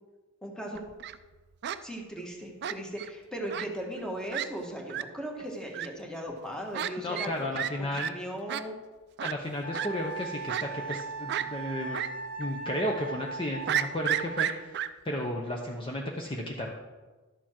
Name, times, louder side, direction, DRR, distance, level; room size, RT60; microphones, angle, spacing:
voice 1, 0.4-0.8 1.8-7.3 7.8-8.7, right 1 dB, 5° left, 0 dB, 1.4 m, -38 dB
Fowl, 0.7-1.2 1.6-1.8 2.6-3.1 3.5-3.7 4.0-4.1 4.3-4.5 4.9-5.0 5.7-5.9 6.7-6.9 7.2-7.3 7.5-7.7 8.0-8.1 8.5-8.6 9.2-9.3 9.7-9.9 10.5-11.0 11.3-11.5 11.9-12.1 12.4-12.5 13.7-14.9, right 10 dB, 50° right, 0.4 m, -31 dB
voice 2, 7.0-8.1 9.2-12.0 12.4-14.5 14.8-16.7, left 1 dB, 25° left, 0 dB, 0.8 m, -33 dB
Wind instrument woodwind instrument, 9.6-14.5, right 3 dB, 40° left, 1.8 m, -39 dB
11.5 x 7.0 x 4.4 m, 1.2 s
head